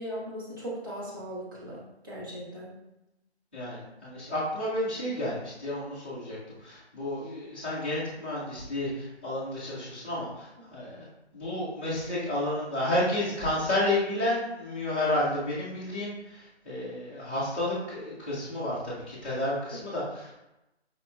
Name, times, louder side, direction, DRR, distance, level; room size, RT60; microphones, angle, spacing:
voice 1, 0.0-2.7, equal, 20° right, -7 dB, 0.8 m, -38 dB
voice 2, 3.5-11.1 11.3-20.3, left 1 dB, 10° left, -12 dB, 0.6 m, -31 dB
5.0 x 2.8 x 2.4 m, 0.93 s
figure-of-eight pair, 155°, 33 cm